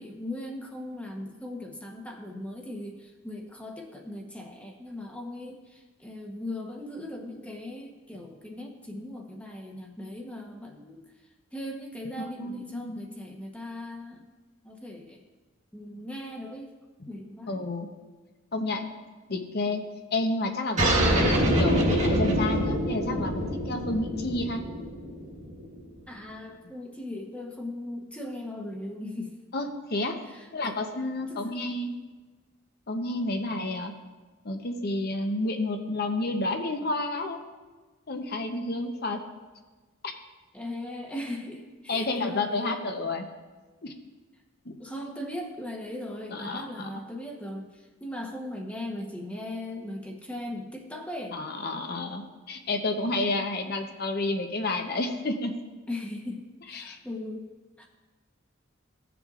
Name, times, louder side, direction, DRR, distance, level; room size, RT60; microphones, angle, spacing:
voice 1, 0.0-11.0 11.5-14.2 14.6-15.2 15.7-16.7 17.1-17.6 26.1-29.3 30.3-30.8 31.3-31.6 40.5-42.7 44.8-51.4 55.9-57.5 57.8-57.9, left 1 dB, 5° left, 1 dB, 0.9 m, -38 dB
voice 2, 12.2-13.0 17.5-17.9 18.5-18.9 19.3-19.8 20.1-24.6 29.5-30.2 30.5-31.9 32.9-33.9 34.4-37.4 38.1-39.2 40.0-40.1 41.9-43.3 43.8-43.9 44.6-44.8 46.3-46.9 51.3-55.6 56.7-57.0, left 2 dB, 50° left, 5 dB, 0.8 m, -30 dB
sound 1, 20.8-25.8, equal, 35° right, 1.5 m, -25 dB
16.5 x 6.9 x 2.5 m, 1.3 s
head